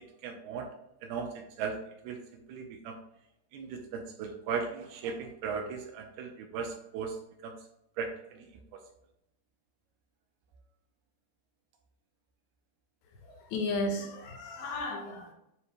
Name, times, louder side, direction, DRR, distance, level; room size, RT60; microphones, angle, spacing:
voice 1, 0.2-0.7 1.0-1.8 2.0-2.2 2.5-3.0 3.5-7.6 8.0-8.4, right 5 dB, 75° right, 3 dB, 2.5 m, -37 dB
voice 2, 13.1-15.3, left 2 dB, 85° left, 1 dB, 3.7 m, -34 dB
9.9 x 4.8 x 2.2 m, 0.81 s
omnidirectional pair, 4.9 m